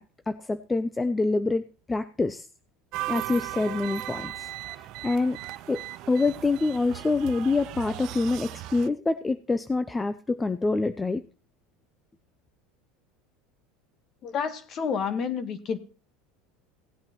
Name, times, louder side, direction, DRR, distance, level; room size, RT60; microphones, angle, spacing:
voice 1, 0.3-1.6 1.9-2.5 3.1-4.5 5.0-5.4 5.7-5.8 6.1-11.2, left 3 dB, 15° left, 0.5 m, -26 dB
sound 1, 2.9-8.9, right 16 dB, 55° right, 0.5 m, -37 dB
voice 2, 14.2-15.8, left 6 dB, 40° left, 1.3 m, -29 dB
17.0 x 8.7 x 2.9 m
supercardioid pair, 115°, 0 cm